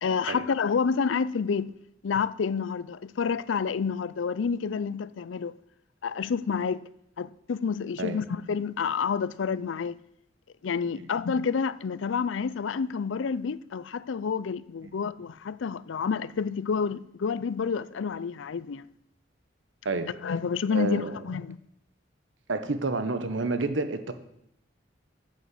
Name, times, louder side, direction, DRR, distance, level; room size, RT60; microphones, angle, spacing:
voice 1, 0.0-1.7 2.0-5.6 6.0-6.8 7.2-10.0 10.6-18.9 20.2-21.6, left 6 dB, 80° left, 0.4 m, -29 dB
voice 2, 20.7-21.1 22.5-24.1, right 3 dB, 75° right, 1.0 m, -29 dB
9.2 x 6.3 x 8.2 m
head